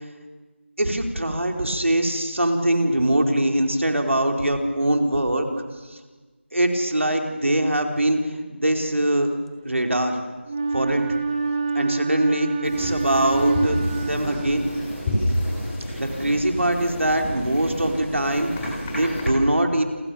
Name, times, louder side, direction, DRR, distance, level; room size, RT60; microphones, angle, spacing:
voice 1, 0.8-5.5 5.9-6.0 6.5-9.3 9.6-10.2 10.7-11.0 11.7-14.7 16.0-19.8, right 1 dB, 85° right, 3 dB, 4.6 m, -22 dB
Wind instrument woodwind instrument, 10.5-15.2, right 4 dB, 25° right, 2.4 m, -26 dB
sound 1, 12.6-19.2, left 1 dB, 10° left, 6.7 m, -29 dB
28.5 x 27.0 x 7.2 m, 1.3 s
figure-of-eight pair, 175°, 7 cm